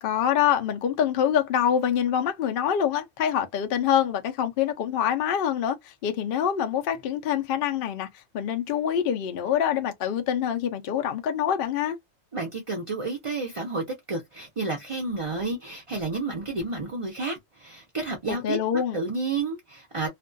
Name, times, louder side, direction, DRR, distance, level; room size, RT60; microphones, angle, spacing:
voice 1, 0.0-12.0 18.3-19.0, left 9 dB, 60° left, 0.6 m, -25 dB
voice 2, 12.3-20.1, right 3 dB, 45° right, 0.4 m, -31 dB
2.5 x 2.2 x 2.5 m
omnidirectional pair, 1.4 m